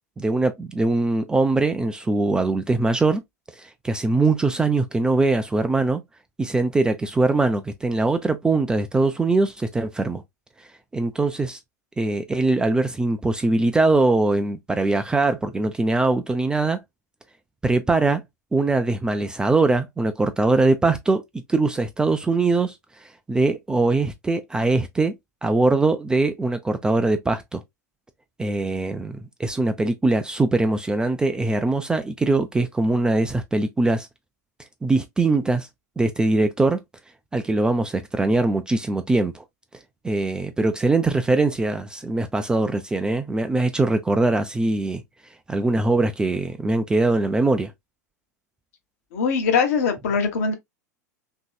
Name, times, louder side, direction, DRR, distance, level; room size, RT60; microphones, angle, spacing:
voice 1, 0.2-3.2 3.5-6.0 6.4-10.2 10.9-11.6 12.0-16.8 17.6-18.2 18.5-21.2 21.5-22.7 23.0-25.1 25.4-27.6 28.4-34.1 34.8-35.7 36.0-36.8 37.3-39.4 40.0-45.0 45.5-47.7, right 3 dB, 10° right, 0.3 m, -22 dB
voice 2, 49.1-50.5, left 5 dB, 55° left, 0.9 m, -22 dB
3.0 x 2.7 x 2.3 m
figure-of-eight pair, 90°, 10 cm